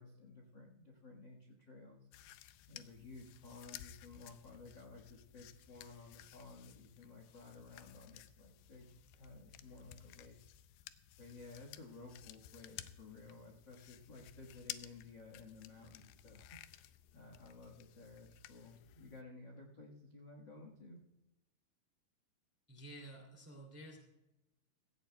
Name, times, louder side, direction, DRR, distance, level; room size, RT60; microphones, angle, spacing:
voice 1, 0.0-2.4 2.7-10.4 10.7-10.8 11.2-21.0, left 3 dB, 50° left, 1 dB, 1.3 m, -55 dB
sound 1, 2.1-19.2, left 13 dB, 85° left, 2.5 m, -55 dB
voice 2, 22.7-24.0, right 1 dB, 5° right, 2 dB, 1.6 m, -52 dB
16.0 x 16.0 x 2.3 m, 0.91 s
omnidirectional pair, 4.6 m